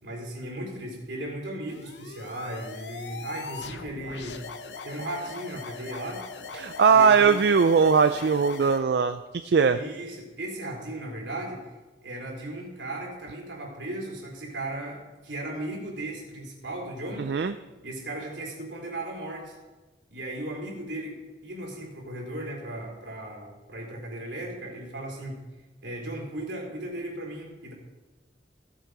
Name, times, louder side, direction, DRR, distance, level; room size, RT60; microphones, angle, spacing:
voice 1, 0.0-4.4 4.8-6.2 6.9-7.6 9.7-11.6 12.0-17.3 17.8-19.6 20.1-21.2 21.4-25.4 25.8-27.7, right 1 dB, 85° right, -2 dB, 3.6 m, -36 dB
sound 1, 1.7-8.8, left 4 dB, 75° left, 0.8 m, -41 dB
voice 2, 6.6-9.8 17.2-17.5, right 5 dB, 65° right, 10 dB, 0.4 m, -20 dB
16.0 x 7.7 x 4.7 m, 1.2 s
head